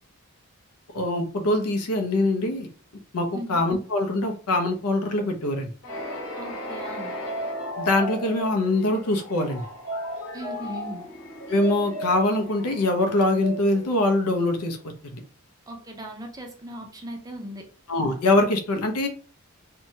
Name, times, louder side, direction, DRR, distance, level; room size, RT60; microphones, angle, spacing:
voice 1, 0.9-2.7 3.1-5.7 7.8-9.6 11.5-14.8 15.0-15.2 17.9-19.1, left 2 dB, 80° left, 5 dB, 0.6 m, -23 dB
sound 1, 5.8-14.6, equal, 60° left, 1.0 m, -35 dB
voice 2, 6.4-7.1 10.3-11.0 15.7-17.6, right 1 dB, 15° right, 2 dB, 0.4 m, -38 dB
2.7 x 2.2 x 2.7 m, 0.39 s
head